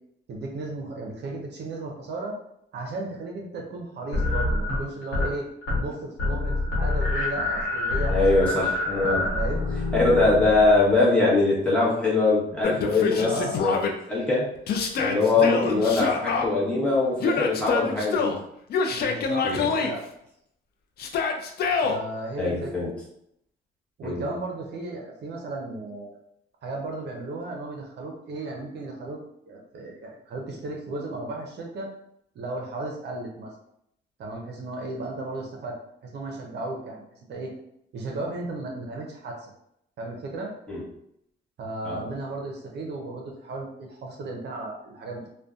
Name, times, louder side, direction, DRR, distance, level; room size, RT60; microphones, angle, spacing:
voice 1, 0.3-2.4 2.7-5.5 5.8-8.7 9.3-9.7 13.2-13.6 15.1-15.5 18.9-20.1 21.8-22.9 24.0-26.2 26.6-29.2 29.5-31.9 32.3-33.5 34.2-35.8 36.0-37.5 37.9-39.5 40.0-40.5 41.6-45.3, right 2 dB, 60° right, 0 dB, 0.5 m, -35 dB
sound 1, 4.1-5.3 5.6-5.9 6.2-10.9, left 2 dB, 70° left, 1.0 m, -26 dB
voice 2, 8.1-9.3 9.9-13.8 14.1-14.5 15.0-18.4 19.4-19.7 22.4-22.9 24.0-24.3 40.7-40.8 41.8-42.0, left 3 dB, 5° left, -7 dB, 1.0 m, -22 dB
Yell, 12.6-13.9 14.7-16.5 17.2-18.4 18.7-19.9 21.0-22.0, left 5 dB, 55° left, 0.4 m, -26 dB
2.5 x 2.1 x 2.3 m, 0.76 s
cardioid pair, 90°, 20 cm